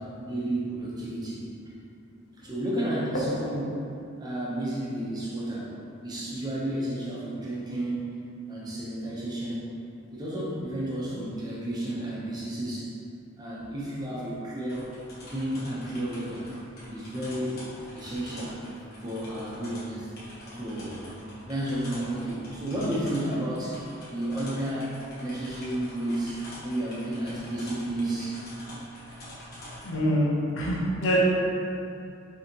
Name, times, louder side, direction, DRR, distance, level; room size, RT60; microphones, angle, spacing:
voice 1, 0.0-1.4 2.4-3.8 4.2-5.7 6.0-8.2 8.5-9.7 10.1-12.9 13.4-14.9 15.3-16.5 16.9-17.6 17.9-18.7 19.0-20.1 20.5-21.0 21.4-23.8 24.1-28.4, right 1 dB, 20° right, -7 dB, 0.9 m, -32 dB
sound 1, 14.7-29.9, equal, 50° left, 1.3 m, -45 dB
voice 2, 29.8-30.3 30.6-31.2, equal, 80° left, -6 dB, 0.8 m, -25 dB
5.5 x 3.2 x 3.0 m, 2.6 s
head